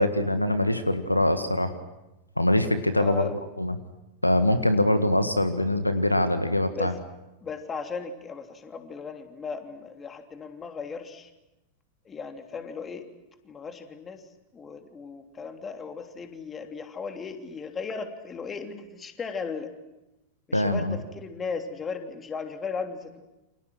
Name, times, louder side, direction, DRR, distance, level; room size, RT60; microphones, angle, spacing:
voice 1, 0.0-1.7 2.4-3.3 3.6-3.8 4.2-6.9 20.5-21.0, left 1 dB, 85° left, 10 dB, 1.6 m, -23 dB
voice 2, 2.9-3.3 6.7-7.0 7.4-11.3 12.0-13.1 13.4-14.3 14.5-19.7 20.5-23.2, left 5 dB, 20° left, 5 dB, 3.0 m, -36 dB
29.5 x 27.5 x 6.3 m, 0.99 s
figure-of-eight pair, 90°, 0 cm